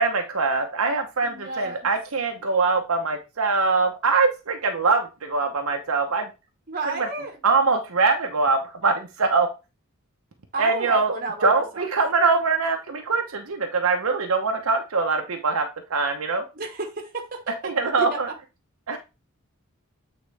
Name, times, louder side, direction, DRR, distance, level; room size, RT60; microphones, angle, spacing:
voice 1, 0.0-6.3 7.4-9.5 10.6-11.1 11.4-16.4 17.6-18.3 18.9-19.0, right 4 dB, 75° right, 0.9 m, -23 dB
voice 2, 1.2-1.9 6.7-7.4 10.5-11.9 16.5-17.5 17.8-18.3, right 3 dB, 40° right, 1.2 m, -32 dB
8.3 x 4.0 x 3.3 m
head